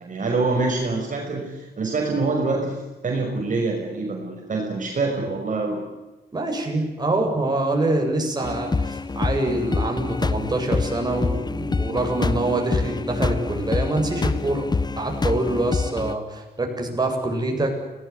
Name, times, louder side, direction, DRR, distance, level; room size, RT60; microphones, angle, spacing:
voice 1, 0.0-2.8 3.0-5.8, right 3 dB, 50° right, 0 dB, 5.7 m, -25 dB
voice 2, 6.3-17.7, right 2 dB, 25° right, 2 dB, 7.8 m, -25 dB
sound 1, 8.4-16.1, left 4 dB, 25° left, 0.8 m, -26 dB
29.5 x 18.5 x 9.9 m, 1.1 s
wide cardioid pair, 145°, 17 cm